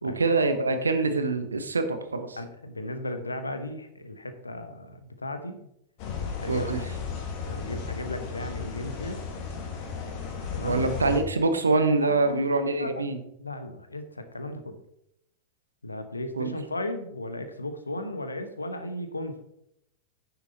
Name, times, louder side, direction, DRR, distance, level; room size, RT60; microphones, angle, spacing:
voice 1, 0.0-2.3 6.5-6.8 10.6-13.2 16.4-16.5, right 3 dB, 75° right, 8 dB, 1.0 m, -25 dB
voice 2, 2.4-5.7 6.4-6.9 7.4-9.2 10.5-10.8 12.0-13.1 13.4-14.8 15.8-19.4, left 1 dB, 80° left, 9 dB, 1.0 m, -36 dB
sound 1, 6.0-11.2, left 5 dB, 45° left, 2.1 m, -34 dB
9.9 x 7.0 x 4.0 m, 0.78 s
figure-of-eight pair, 90°, 0 cm